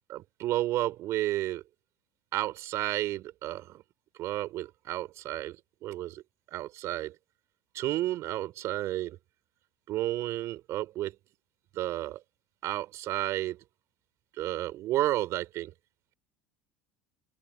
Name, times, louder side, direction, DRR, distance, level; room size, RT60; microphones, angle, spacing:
voice 1, 0.1-1.6 2.3-3.8 4.2-5.6 5.8-6.2 6.5-7.2 7.7-9.2 9.9-11.2 11.7-12.2 12.6-13.6 14.4-15.7, right 15 dB, 50° right, 3.9 m, -31 dB
open air
hypercardioid pair, 70°, 6 cm